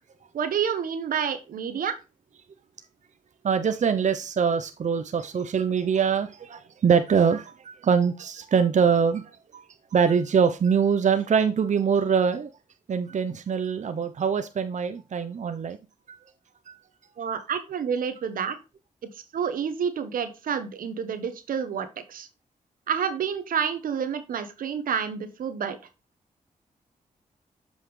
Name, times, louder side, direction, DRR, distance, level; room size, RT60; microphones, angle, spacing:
voice 1, 0.3-1.9 17.2-18.6 19.0-22.3 22.9-25.8, right 7 dB, 85° right, 1.0 m, -29 dB
voice 2, 3.4-9.2 9.5-9.6 9.9-12.5 12.9-15.8 16.1-16.2 16.7-16.8, right 6 dB, 55° right, 0.6 m, -23 dB
7.4 x 5.5 x 3.2 m
cardioid pair, 55°, 14 cm